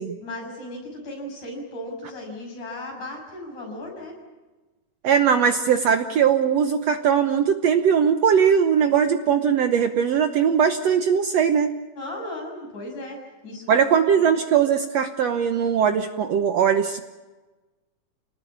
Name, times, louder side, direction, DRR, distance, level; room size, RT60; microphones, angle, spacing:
voice 1, 0.2-4.1 12.0-13.8 14.1-14.3, left 1 dB, 60° left, 1 dB, 8.2 m, -36 dB
voice 2, 5.0-11.7 13.7-17.0, right 7 dB, 65° right, 7 dB, 1.9 m, -20 dB
29.5 x 19.0 x 8.7 m, 1.2 s
omnidirectional pair, 3.8 m